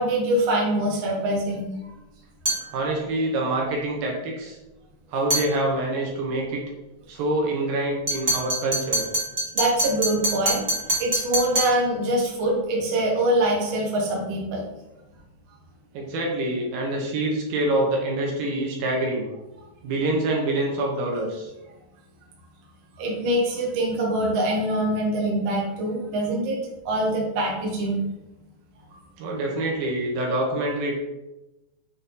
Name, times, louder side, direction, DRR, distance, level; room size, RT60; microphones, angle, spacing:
voice 1, 0.0-1.7 9.5-10.6 11.0-14.6 23.0-26.6 26.8-28.1, right 1 dB, 50° right, -3 dB, 1.7 m, -24 dB
sound 1, 2.4-2.7 5.3-5.5 8.1-11.8, right 1 dB, 35° right, 1.3 m, -25 dB
voice 2, 2.7-4.6 5.1-6.6 7.1-9.1 15.9-19.3 19.8-21.5 29.2-31.0, right 1 dB, 75° right, -1 dB, 2.9 m, -26 dB
7.8 x 4.2 x 3.9 m, 1.0 s
omnidirectional pair, 4.3 m